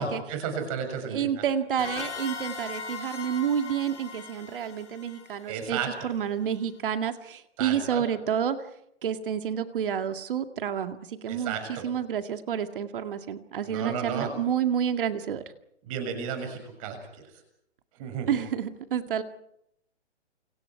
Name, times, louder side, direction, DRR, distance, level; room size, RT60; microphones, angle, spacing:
voice 1, 0.0-1.4 5.5-6.1 7.6-8.0 11.3-11.9 13.6-14.3 15.8-17.2 17.9-18.4, right 6 dB, 30° right, 6 dB, 6.8 m, -33 dB
voice 2, 1.1-5.8 6.0-8.6 9.0-15.4 18.3-19.2, right 8 dB, 50° right, 8 dB, 2.1 m, -29 dB
sound 1, 1.8-6.3, left 5 dB, 80° left, 6.5 m, -39 dB
29.0 x 26.5 x 4.7 m, 0.75 s
hypercardioid pair, 160°, 35 cm